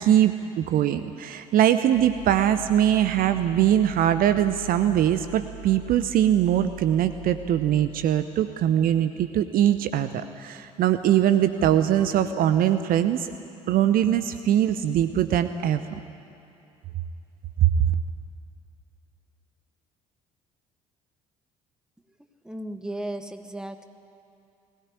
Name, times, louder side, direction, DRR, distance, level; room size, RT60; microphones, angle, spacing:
voice 1, 0.0-13.3 13.7-16.0 17.6-17.7, right 11 dB, 50° right, 11 dB, 0.8 m, -22 dB
sound 1, 1.9-7.8, right 10 dB, 65° left, 2.3 m, -42 dB
voice 2, 22.4-23.9, right 1 dB, 5° right, 7 dB, 1.6 m, -35 dB
21.0 x 17.5 x 9.8 m, 2.6 s
figure-of-eight pair, 55°, 19 cm